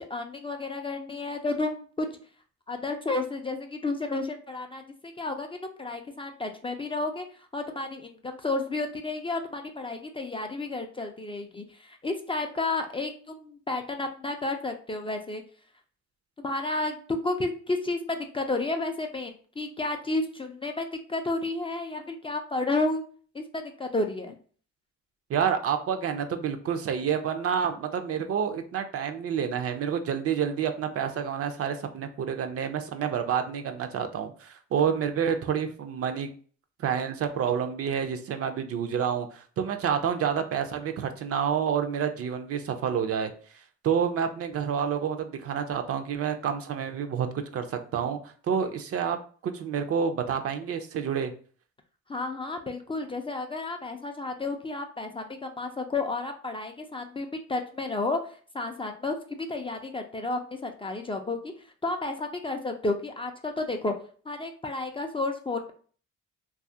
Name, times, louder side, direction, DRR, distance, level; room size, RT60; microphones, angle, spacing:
voice 1, 0.1-2.1 2.7-7.3 7.5-15.4 16.4-23.0 23.3-24.4 52.1-58.2 58.5-61.5 61.8-63.9 64.3-65.7, left 2 dB, 20° left, 4 dB, 0.3 m, -31 dB
voice 2, 25.3-36.3 36.8-47.3 47.5-49.2 49.4-51.3, right 7 dB, 50° right, 7 dB, 0.4 m, -29 dB
2.8 x 2.4 x 2.6 m, 0.43 s
cardioid pair, 90°, 30 cm